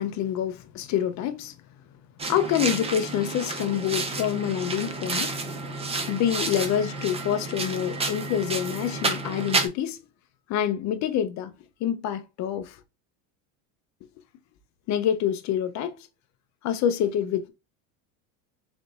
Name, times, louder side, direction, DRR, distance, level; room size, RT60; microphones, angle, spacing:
voice 1, 0.0-1.5 2.2-5.3 6.1-10.0 10.5-11.5 11.8-12.8 14.9-16.1 16.6-17.5, left 10 dB, 45° left, 0.5 m, -27 dB
sound 1, 2.2-9.7, right 3 dB, 15° right, 0.6 m, -30 dB
3.9 x 3.5 x 2.3 m
cardioid pair, 140°, 41 cm